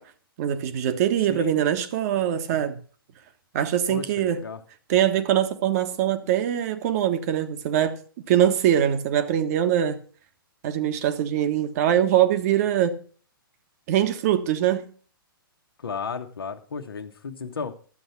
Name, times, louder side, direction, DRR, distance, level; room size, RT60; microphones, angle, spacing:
voice 1, 0.4-2.8 3.5-4.4 4.9-8.0 8.3-10.0 10.6-13.0 13.9-14.9, right 10 dB, 40° right, 1.4 m, -23 dB
voice 2, 1.3-1.6 3.9-4.6 15.8-17.7, left 5 dB, 70° left, 1.3 m, -34 dB
12.5 x 7.8 x 5.8 m
figure-of-eight pair, 120°, 12 cm